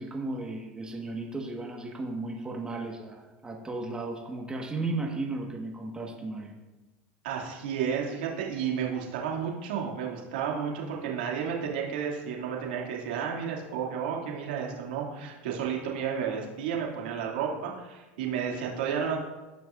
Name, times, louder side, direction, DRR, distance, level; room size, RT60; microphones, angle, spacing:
voice 1, 0.0-6.6, right 2 dB, 15° right, 0 dB, 1.5 m, -35 dB
voice 2, 7.2-19.2, right 7 dB, 80° right, -2 dB, 2.5 m, -32 dB
17.5 x 6.1 x 2.6 m, 1.1 s
hypercardioid pair, 95°, 5 cm